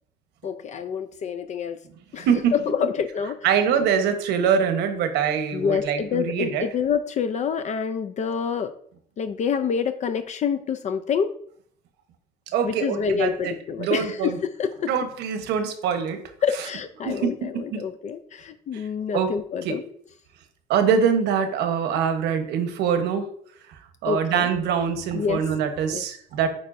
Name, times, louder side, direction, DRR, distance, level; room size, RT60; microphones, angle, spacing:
voice 1, 0.4-1.8 2.1-3.4 5.5-8.7 9.2-11.3 12.6-14.9 16.4-19.8 24.1-24.5 25.1-25.4 25.9-26.0, left 7 dB, 45° left, 9 dB, 0.4 m, -27 dB
voice 2, 2.2-2.5 3.4-6.6 12.5-14.4 14.9-16.2 17.0-17.8 18.7-18.8 19.1-19.3 19.6-19.8 20.7-23.3 24.0-26.5, right 7 dB, 85° right, 7 dB, 1.0 m, -24 dB
8.8 x 4.6 x 2.6 m, 0.62 s
cardioid pair, 110°, 17 cm